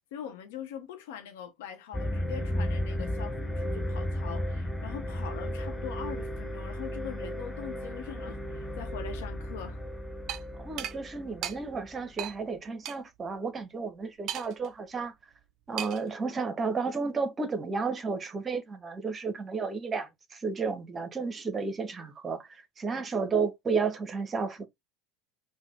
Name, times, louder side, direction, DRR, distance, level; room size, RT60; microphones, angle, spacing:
voice 1, 0.0-9.8, left 9 dB, 75° left, 0.9 m, -42 dB
sound 1, 1.9-12.2, left 1 dB, 15° left, 0.7 m, -34 dB
sound 2, 10.3-10.4 10.8-11.0 11.4-11.6 12.2-12.3 12.8-13.0 14.3-14.7 15.8-16.1, right 11 dB, 55° right, 0.4 m, -35 dB
voice 2, 10.6-15.1 15.7-24.7, right 4 dB, 30° right, 0.9 m, -32 dB
3.5 x 2.2 x 3.5 m
hypercardioid pair, 80°, 0 cm